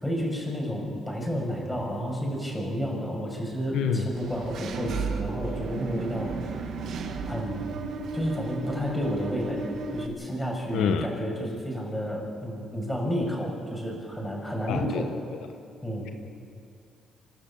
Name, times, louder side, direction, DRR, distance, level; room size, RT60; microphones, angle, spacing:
voice 1, 0.0-6.7 7.2-7.8 8.1-9.6 9.9-15.0 15.8-16.1, equal, 10° left, -1 dB, 7.1 m, -31 dB
voice 2, 3.7-4.0 10.7-11.1 14.7-15.0 15.3-15.4, left 7 dB, 85° left, 6 dB, 1.3 m, -27 dB
Engine / Mechanisms, 4.1-10.1, right 4 dB, 70° right, 1.7 m, -34 dB
28.0 x 12.5 x 8.7 m, 2.4 s
cardioid pair, 90°, 0 cm